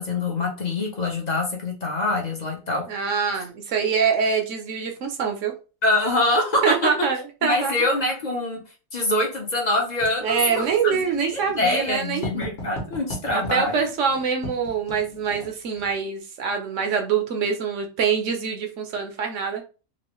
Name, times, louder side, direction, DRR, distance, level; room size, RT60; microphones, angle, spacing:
voice 1, 0.0-2.8 5.8-6.9 7.4-8.6 8.9-13.9, left 2 dB, 40° left, 1 dB, 0.6 m, -24 dB
voice 2, 2.9-5.5 6.6-7.7 10.2-12.5 13.3-19.6, right 6 dB, 65° right, 4 dB, 0.9 m, -25 dB
Writing, 10.0-15.9, left 1 dB, 55° left, 1.3 m, -38 dB
3.0 x 2.4 x 2.9 m, 0.34 s
omnidirectional pair, 1.5 m